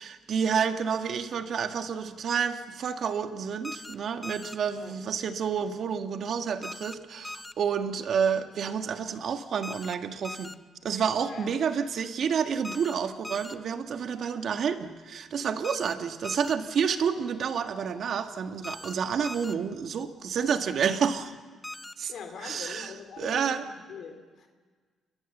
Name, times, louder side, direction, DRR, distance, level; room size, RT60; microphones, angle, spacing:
voice 1, 0.0-10.5 10.8-21.3 22.0-22.1 22.4-23.6, right 7 dB, 60° right, 7 dB, 1.7 m, -29 dB
sound 1, 3.6-4.0 4.2-4.6 6.6-7.0 7.2-7.5 9.6-10.0 10.2-10.6 12.6-13.0 13.2-13.6 15.6-15.9 16.2-16.6 18.6-18.9 19.2-19.5 21.6-21.9, left 1 dB, 10° left, 0.8 m, -40 dB
voice 2, 11.2-11.5 22.1-24.5, left 6 dB, 65° left, 6 dB, 3.0 m, -43 dB
29.0 x 21.5 x 7.3 m, 1.5 s
cardioid pair, 90°, 0 cm